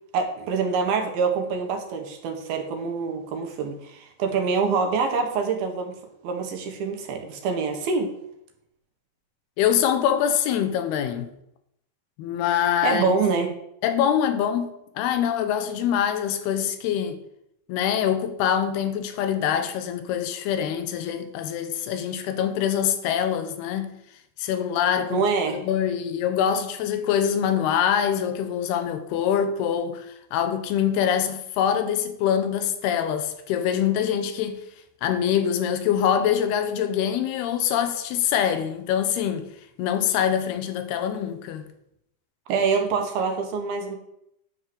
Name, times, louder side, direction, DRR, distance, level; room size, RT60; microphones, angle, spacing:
voice 1, 0.1-6.0 6.2-8.1 12.8-13.6 25.1-25.6 42.5-44.0, right 5 dB, 75° right, 3.1 m, -25 dB
voice 2, 9.6-11.3 12.2-13.2 13.8-17.2 17.7-23.9 24.4-25.2 25.5-30.1 30.3-34.6 35.0-39.5 39.8-41.7, left 9 dB, 90° left, 2.9 m, -24 dB
9.8 x 4.6 x 7.7 m
omnidirectional pair, 4.5 m